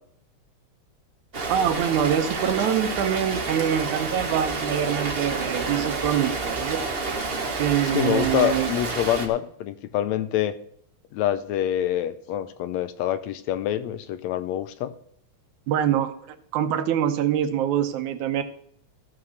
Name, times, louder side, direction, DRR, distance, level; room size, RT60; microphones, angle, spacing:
Rain, 1.3-9.3, right 3 dB, 55° right, 0.6 m, -29 dB
voice 1, 1.5-6.8 7.6-8.7 15.7-18.4, right 9 dB, 90° right, 9 dB, 2.3 m, -24 dB
voice 2, 7.8-10.6 11.1-14.9, left 11 dB, 80° left, 12 dB, 1.8 m, -26 dB
14.5 x 6.1 x 6.5 m, 0.67 s
omnidirectional pair, 3.3 m